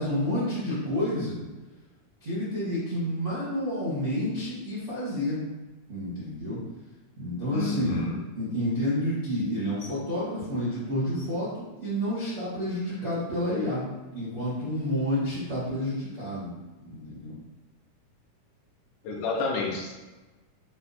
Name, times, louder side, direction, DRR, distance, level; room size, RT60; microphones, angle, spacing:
voice 1, 0.0-1.4 2.2-5.4 5.9-6.6 7.2-8.1 8.3-16.5 16.8-17.3, left 1 dB, 55° right, -11 dB, 0.6 m, -29 dB
voice 2, 7.5-8.2 19.1-19.9, left 3 dB, 80° left, 0 dB, 1.9 m, -30 dB
5.0 x 2.2 x 4.0 m, 1.2 s
omnidirectional pair, 3.7 m